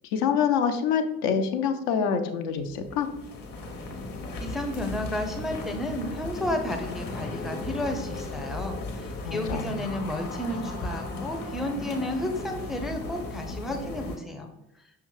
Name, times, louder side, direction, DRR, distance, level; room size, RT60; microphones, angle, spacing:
voice 1, 0.1-3.1 9.2-9.8, left 7 dB, 70° left, 7 dB, 0.6 m, -26 dB
sound 1, 2.6-14.2, left 2 dB, 50° left, 0.9 m, -36 dB
voice 2, 4.4-14.5, left 1 dB, ahead, 5 dB, 0.4 m, -32 dB
5.5 x 2.3 x 3.0 m, 0.85 s
figure-of-eight pair, 45°, 44 cm